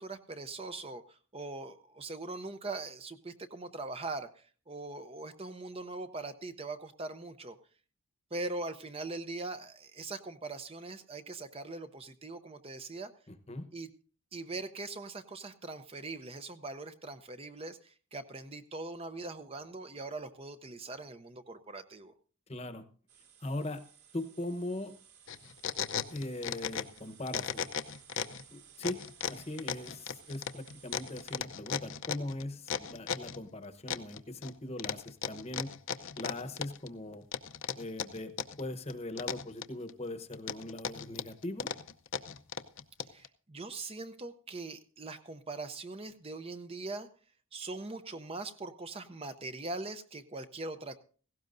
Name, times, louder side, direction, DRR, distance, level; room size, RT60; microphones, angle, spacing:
voice 1, 0.0-7.6 8.3-13.1 13.7-13.9 14.3-22.1 43.0-47.1 47.5-51.0, right 3 dB, 25° right, 9 dB, 0.6 m, -41 dB
voice 2, 13.3-13.7 22.5-22.8 23.4-23.8 24.1-24.9 26.1-27.6 28.5-29.0 29.3-35.7 36.2-37.2 37.8-41.7, left 1 dB, 30° left, 10 dB, 1.0 m, -40 dB
sound 1, 23.1-31.4, right 8 dB, 85° right, 3.3 m, -58 dB
sound 2, 25.3-27.0 27.3-28.4 28.8-33.4 33.9-34.5 34.8-36.9 37.3-38.6 38.9-39.9 40.3-43.3, left 7 dB, 60° left, 0.7 m, -36 dB
17.5 x 16.0 x 2.6 m, 0.40 s
head